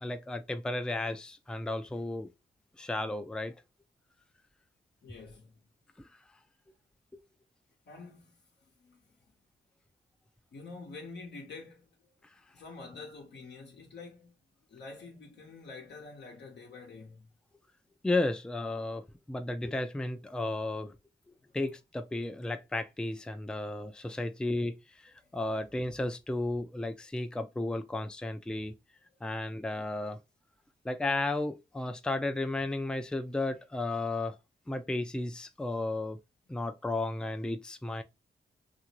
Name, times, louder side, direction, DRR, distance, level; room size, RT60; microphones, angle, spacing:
voice 1, 0.0-2.3 2.8-3.5 6.0-6.1 7.1-7.2 18.0-21.0 21.5-28.8 29.2-30.2 30.8-34.4 34.7-36.2 36.5-38.0, left 2 dB, 5° left, 0.4 m, -33 dB
voice 2, 5.0-5.6 7.9-9.2 10.5-12.1 12.5-14.3 14.7-17.3 24.1-24.2 25.4-25.5 29.1-29.3, left 3 dB, 65° left, 0.8 m, -48 dB
2.9 x 2.5 x 2.9 m
supercardioid pair, 50°, 19 cm